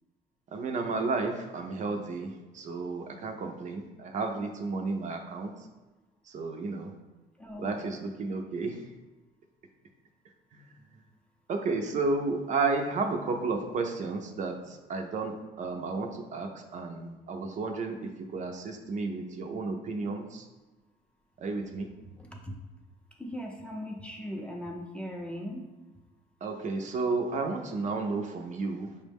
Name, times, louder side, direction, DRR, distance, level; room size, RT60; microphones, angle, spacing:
voice 1, 0.5-5.7 6.2-6.9 7.6-9.0 10.5-11.1 11.5-20.5 21.4-21.9 26.4-29.0, right 3 dB, 45° right, 4 dB, 0.5 m, -32 dB
voice 2, 7.3-7.7 11.4-11.5 22.0-22.5 23.0-26.0, equal, 5° left, 0 dB, 0.5 m, -40 dB
5.2 x 2.1 x 3.4 m, 1.2 s
cardioid pair, 110°, 17 cm